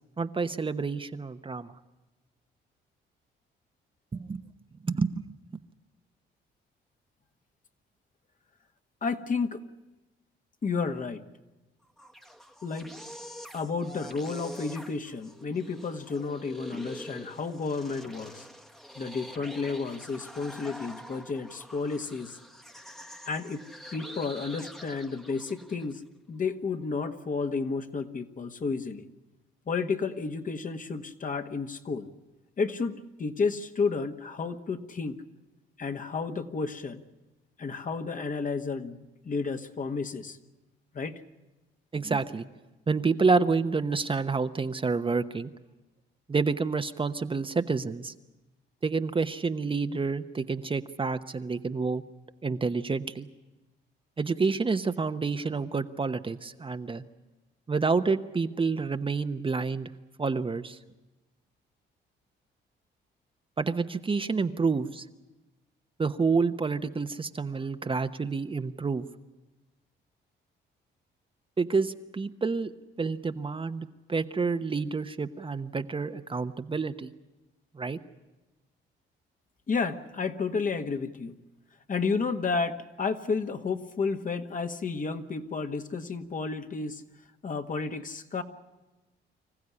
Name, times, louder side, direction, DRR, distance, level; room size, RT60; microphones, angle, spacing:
voice 1, 0.2-1.7 4.1-4.4 4.8-5.2 41.9-42.4 42.9-45.5 46.3-48.1 48.8-52.0 52.4-53.3 54.2-57.0 57.7-59.9 60.2-60.8 63.6-65.0 66.0-69.1 71.6-72.7 73.0-77.1 77.7-78.0, right 4 dB, 25° right, 9 dB, 0.9 m, -28 dB
voice 2, 9.0-9.6 10.6-11.2 12.6-12.9 13.5-18.5 18.9-22.4 23.3-23.6 23.9-26.0 26.3-29.1 29.7-32.1 32.6-35.2 35.8-37.0 37.6-40.4 40.9-41.2 79.7-81.3 81.9-87.0 87.4-88.4, left 4 dB, 40° left, 7 dB, 1.6 m, -31 dB
sound 1, 11.8-26.0, equal, ahead, 1.2 m, -46 dB
25.5 x 15.0 x 9.8 m, 1.1 s
cardioid pair, 90°, 20 cm